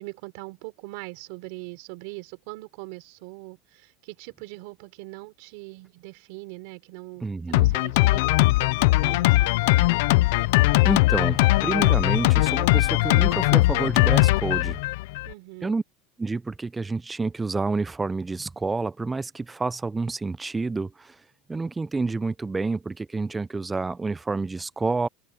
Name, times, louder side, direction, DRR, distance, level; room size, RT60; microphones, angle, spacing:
voice 1, 0.0-10.0 15.2-15.8, right 24 dB, 75° right, 4.4 m, -41 dB
voice 2, 7.2-7.8 10.8-14.8 15.6-15.8 16.2-21.2 21.5-25.1, right 3 dB, 15° right, 0.4 m, -29 dB
Drum kit, 7.5-15.3, left 20 dB, 80° left, 0.5 m, -20 dB
supercardioid pair, 125°, 0 cm